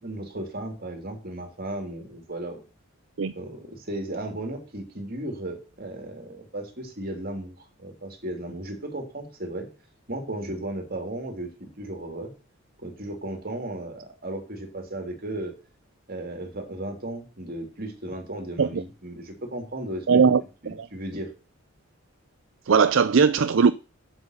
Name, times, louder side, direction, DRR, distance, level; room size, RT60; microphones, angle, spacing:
voice 1, 0.0-2.6 3.3-9.7 10.1-12.3 12.8-15.5 16.1-20.2 20.6-21.3, right 1 dB, 45° right, 3.2 m, -35 dB
voice 2, 20.1-20.9 22.7-23.7, right 5 dB, 60° right, 0.5 m, -20 dB
8.0 x 8.0 x 6.6 m
head